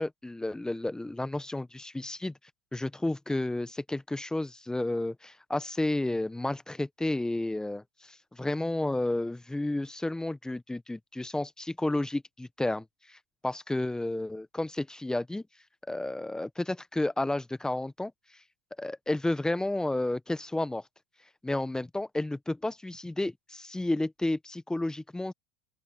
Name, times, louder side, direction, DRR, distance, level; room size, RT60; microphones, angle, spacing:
voice 1, 0.0-2.3 2.7-13.2 13.4-15.4 15.9-18.1 18.8-20.8 21.4-25.3, left 2 dB, 5° left, 1.4 m, -31 dB
open air
hypercardioid pair, 85°, 10 cm